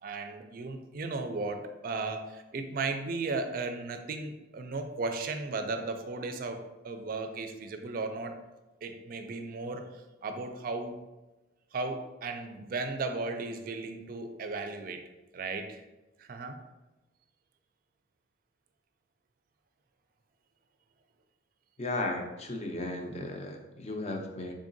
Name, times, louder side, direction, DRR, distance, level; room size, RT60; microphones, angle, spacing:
voice 1, 0.0-8.4 8.8-11.0 11.7-15.0 15.3-15.8 16.2-16.6, right 3 dB, 50° right, 7 dB, 0.4 m, -35 dB
voice 2, 21.8-24.5, left 2 dB, 35° left, 3 dB, 0.5 m, -35 dB
3.7 x 3.6 x 2.6 m, 1.1 s
head